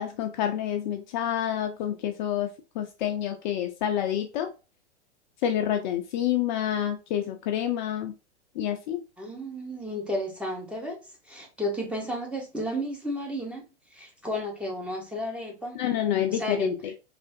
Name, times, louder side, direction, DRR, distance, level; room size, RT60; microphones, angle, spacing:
voice 1, 0.0-2.5 2.8-4.5 5.4-8.1 8.6-9.0 15.7-16.9, left 10 dB, 45° left, 0.4 m, -28 dB
voice 2, 9.2-11.0 11.3-13.6 13.9-15.8 16.3-16.7, equal, 5° right, 0.8 m, -32 dB
3.3 x 2.4 x 2.6 m
hypercardioid pair, 105°, 35 cm